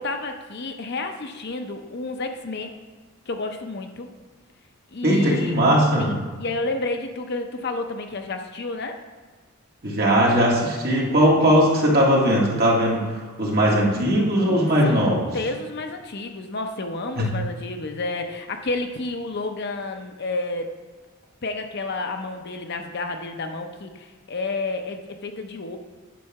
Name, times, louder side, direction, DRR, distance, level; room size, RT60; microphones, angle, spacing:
voice 1, 0.0-2.7 3.3-4.1 4.9-5.5 6.0-9.0 14.5-15.0 15.3-20.7 21.4-25.8, left 2 dB, 50° left, 5 dB, 0.6 m, -30 dB
voice 2, 5.0-6.2 9.8-13.0 13.4-15.3 17.2-17.3, equal, 45° right, -4 dB, 1.9 m, -19 dB
9.3 x 4.5 x 5.9 m, 1.4 s
head